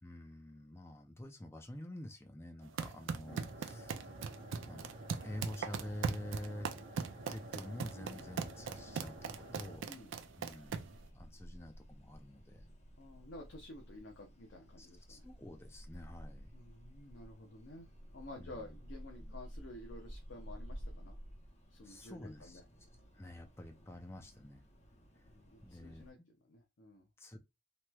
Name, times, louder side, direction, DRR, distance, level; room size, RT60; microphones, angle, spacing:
voice 1, 0.0-4.0 4.6-4.9 5.2-6.7 7.3-12.6 14.8-16.5 18.4-18.7 19.2-19.4 21.8-22.6 23.1-24.6 25.6-26.3 27.2-27.4, left 1 dB, 15° left, 0.4 m, -48 dB
sound 1, 2.6-11.0, right 6 dB, 70° right, 0.4 m, -40 dB
sound 2, 3.3-9.8, right 1 dB, 50° right, 0.8 m, -51 dB
sound 3, 8.0-26.1, equal, 35° left, 0.8 m, -53 dB
voice 2, 13.0-15.3 16.5-17.9 18.1-21.1 21.7-22.6 25.3-26.2 26.4-27.1, left 1 dB, 60° left, 0.6 m, -52 dB
3.0 x 3.0 x 2.2 m
head